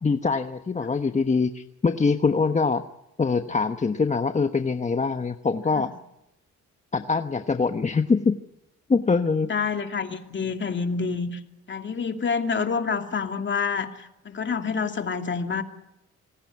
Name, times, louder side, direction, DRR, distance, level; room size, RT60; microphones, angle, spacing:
voice 1, 0.0-2.8 3.2-5.9 6.9-8.4 8.9-9.5, left 4 dB, 25° left, 8 dB, 1.0 m, -23 dB
voice 2, 9.5-11.4 11.7-15.6, left 5 dB, 40° left, 6 dB, 2.6 m, -28 dB
27.0 x 18.5 x 9.5 m, 0.90 s
cardioid pair, 90°, 30 cm